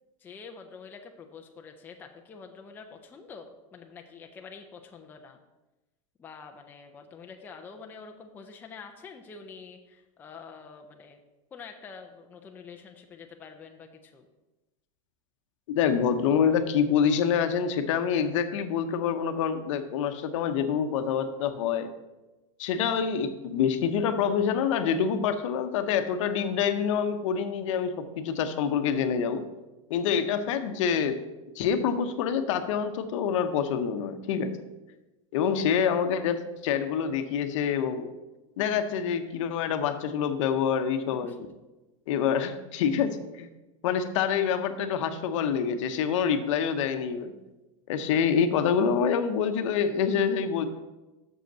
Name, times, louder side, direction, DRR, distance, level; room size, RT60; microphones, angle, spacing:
voice 1, 0.2-5.4 6.2-11.2 11.5-14.3 35.4-35.6 41.1-41.4, left 5 dB, 10° left, 3 dB, 0.4 m, -46 dB
voice 2, 15.7-21.9 22.6-29.4 29.9-31.2 31.6-34.6 35.3-38.1 38.6-41.3 42.1-43.5 43.8-47.3 47.9-50.7, left 7 dB, 65° left, 9 dB, 0.8 m, -26 dB
6.5 x 5.2 x 6.7 m, 1.1 s
supercardioid pair, 170°, 17 cm